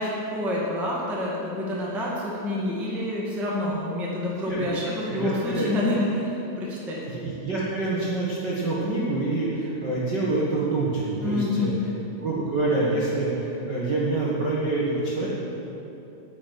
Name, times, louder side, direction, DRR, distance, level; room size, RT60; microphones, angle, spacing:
voice 1, 0.0-7.0 11.2-11.8, left 1 dB, ahead, -5 dB, 0.7 m, -28 dB
voice 2, 4.4-4.8 5.0-5.7 7.0-11.7 12.2-15.3, right 2 dB, 75° right, -7 dB, 1.0 m, -26 dB
9.9 x 7.2 x 9.2 m, 2.9 s
omnidirectional pair, 4.4 m